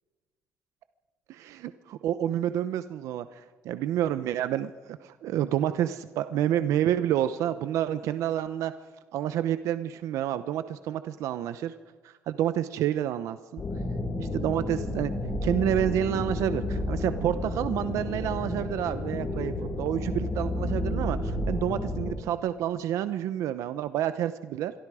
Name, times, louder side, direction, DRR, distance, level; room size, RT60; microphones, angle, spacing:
voice 1, 1.3-3.3 3.6-8.7 9.1-11.7 12.3-13.6 14.2-15.1 15.4-24.7, right 11 dB, 75° right, 12 dB, 0.8 m, -29 dB
sound 1, 13.6-22.1, left 2 dB, 30° left, 3.7 m, -31 dB
27.0 x 23.0 x 5.0 m, 1.4 s
cardioid pair, 150°, 5 cm